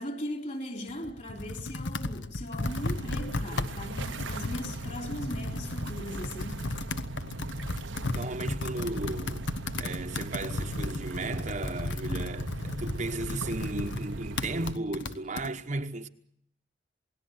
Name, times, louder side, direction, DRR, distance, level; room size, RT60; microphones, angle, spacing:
voice 1, 0.0-6.7, left 1 dB, 40° left, 3.8 m, -39 dB
Computer keyboard, 0.9-15.5, left 2 dB, 75° left, 1.3 m, -35 dB
sound 1, 2.6-14.7, right 2 dB, 90° right, 1.2 m, -39 dB
voice 2, 8.1-9.5 9.8-16.1, right 2 dB, 40° right, 1.1 m, -35 dB
28.0 x 18.5 x 8.0 m
head